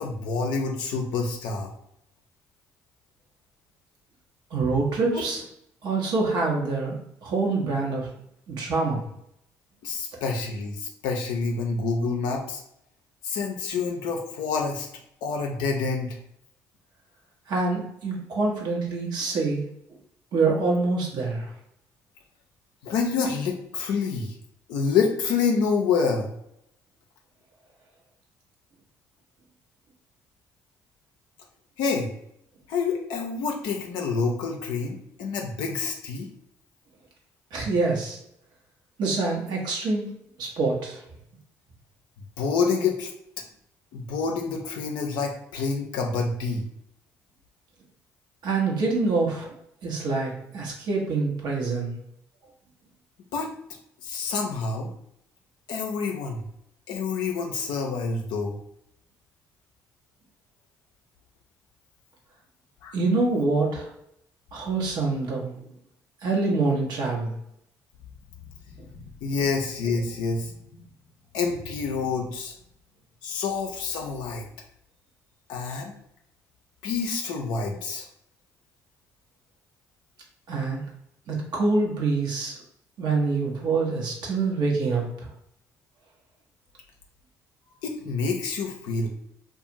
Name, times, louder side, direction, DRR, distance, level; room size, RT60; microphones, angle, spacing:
voice 1, 0.0-1.7 9.8-12.6 13.2-14.9 15.2-16.2 22.8-24.3 24.7-26.3 31.8-32.1 32.7-36.3 42.4-43.1 43.9-46.6 53.3-53.5 54.0-54.9 55.7-56.4 56.9-58.6 62.8-62.9 68.9-70.5 71.3-72.5 73.2-74.5 75.5-75.9 76.8-78.1 87.8-89.1, left 5 dB, 75° left, 1 dB, 0.4 m, -27 dB
voice 2, 4.5-5.4 5.8-7.0 7.2-8.1 8.5-9.0 17.5-19.6 20.3-21.5 37.5-38.2 39.0-40.1 40.4-41.0 48.4-49.6 49.8-51.9 62.9-63.9 64.5-65.5 66.2-67.3 80.5-80.8 81.3-82.5 83.0-85.1, right 3 dB, 70° right, -1 dB, 0.9 m, -25 dB
2.4 x 2.3 x 2.9 m, 0.74 s
hypercardioid pair, 60°, 8 cm